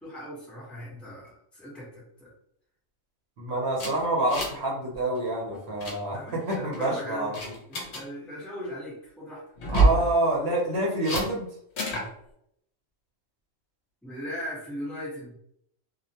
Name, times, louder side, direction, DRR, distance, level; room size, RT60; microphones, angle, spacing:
voice 1, 0.0-2.3 6.1-7.4 7.7-10.1 14.0-15.4, equal, ahead, -7 dB, 0.8 m, -39 dB
voice 2, 3.4-7.5 9.7-11.5, right 1 dB, 60° right, -3 dB, 0.9 m, -27 dB
sound 1, 3.8-4.7 4.9-5.2 5.5-6.0 6.5-6.9 7.3-8.0 9.6-10.0 11.0-11.3 11.8-12.1, right 2 dB, 60° left, 0.9 m, -26 dB
2.4 x 2.1 x 2.7 m, 0.72 s
omnidirectional pair, 1.4 m